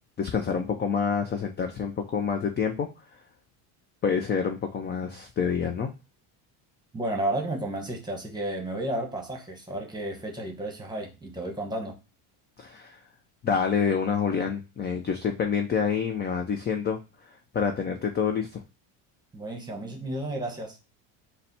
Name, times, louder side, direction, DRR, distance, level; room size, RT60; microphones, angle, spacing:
voice 1, 0.2-2.9 4.0-5.9 12.6-13.0 13.4-18.6, left 6 dB, 25° left, 0.4 m, -27 dB
voice 2, 6.9-12.0 19.3-20.8, right 1 dB, 10° right, 1.1 m, -32 dB
4.1 x 2.2 x 4.0 m
cardioid pair, 110°, 48 cm